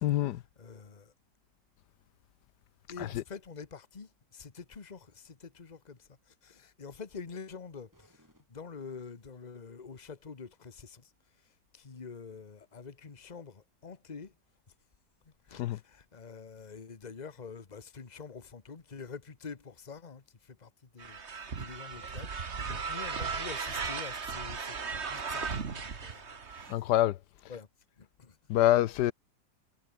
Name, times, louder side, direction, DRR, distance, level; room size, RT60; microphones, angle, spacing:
voice 1, 0.0-0.4 3.0-3.2 15.6-15.8 26.7-27.2 28.5-29.1, left 14 dB, 70° left, 1.2 m, -26 dB
voice 2, 0.6-1.1 2.9-11.1 11.4-14.3 15.2-26.8 27.5-27.7 28.0-28.4, left 5 dB, 25° left, 1.3 m, -47 dB
sound 1, 7.9-9.4, equal, 10° right, 7.4 m, -67 dB
sound 2, 21.0-26.7, right 5 dB, 40° right, 1.8 m, -36 dB
omnidirectional pair, 2.0 m